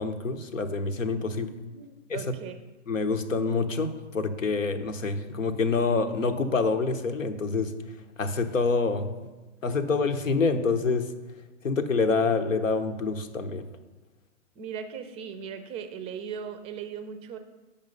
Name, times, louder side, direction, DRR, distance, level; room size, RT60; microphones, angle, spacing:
voice 1, 0.0-1.5 2.1-2.2 2.9-7.7 8.2-9.1 9.6-11.1 11.6-13.6, left 4 dB, 90° left, 8 dB, 0.9 m, -26 dB
voice 2, 1.7-2.6 14.6-17.4, right 7 dB, 15° right, 9 dB, 0.4 m, -38 dB
8.8 x 5.4 x 5.3 m, 1.2 s
figure-of-eight pair, 115°, 38 cm